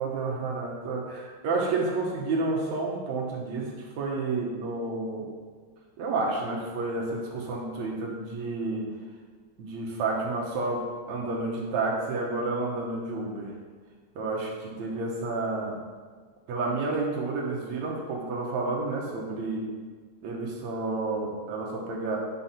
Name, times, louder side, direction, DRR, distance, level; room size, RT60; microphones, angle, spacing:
voice 1, 0.0-5.3 6.0-8.9 9.6-13.5 14.2-15.8 16.5-19.7 20.2-22.2, right 3 dB, 65° right, -2 dB, 2.2 m, -30 dB
9.5 x 4.7 x 5.7 m, 1.5 s
omnidirectional pair, 3.7 m